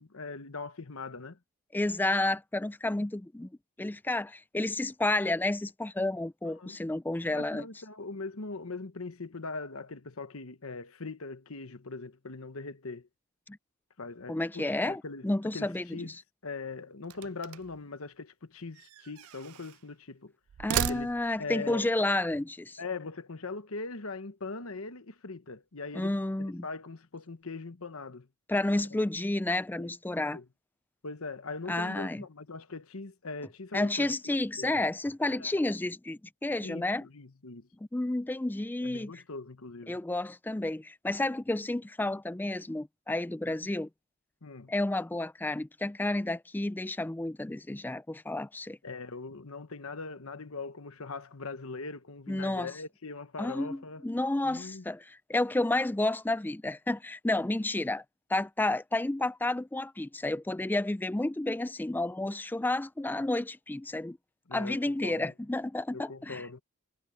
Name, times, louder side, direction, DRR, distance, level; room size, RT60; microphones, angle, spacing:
voice 1, 0.0-1.4 6.6-6.8 7.3-13.1 14.0-15.3 15.5-16.1 16.4-20.3 20.9-21.1 21.4-21.9 22.8-26.1 26.4-28.3 29.8-29.9 30.3-30.4 31.0-34.7 35.4-35.5 36.6-37.7 38.8-40.0 44.4-44.7 48.8-54.0 54.4-54.8 64.5-65.3 65.9-66.6, left 3 dB, 65° left, 1.2 m, -41 dB
voice 2, 1.7-3.5 3.8-7.6 13.5-13.6 14.3-16.2 20.6-22.8 25.9-26.6 28.5-30.4 31.7-32.2 33.7-37.1 37.9-39.2 39.9-43.9 44.7-48.8 52.3-52.7 53.4-58.0 58.3-64.2 64.5-66.5, left 2 dB, 10° left, 0.3 m, -31 dB
sound 1, 17.0-17.8 18.7-19.8 20.5-21.5, right 11 dB, 70° right, 0.3 m, -35 dB
head